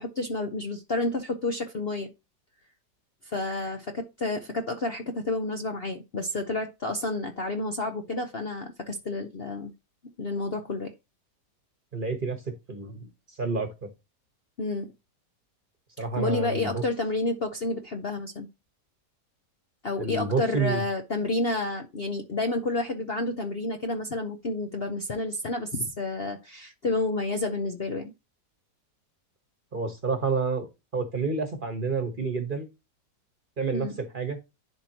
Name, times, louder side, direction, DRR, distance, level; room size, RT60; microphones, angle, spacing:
voice 1, 0.0-2.1 3.2-9.7 10.2-10.9 14.6-14.9 16.2-18.5 19.8-28.1 33.7-34.0, left 2 dB, 45° left, 0.8 m, -30 dB
voice 2, 11.9-12.4 12.7-13.9 16.0-16.8 20.0-20.8 29.7-32.7 33.6-33.9 34.1-34.4, right 4 dB, 35° right, 1.2 m, -29 dB
11.0 x 4.0 x 2.9 m
omnidirectional pair, 1.9 m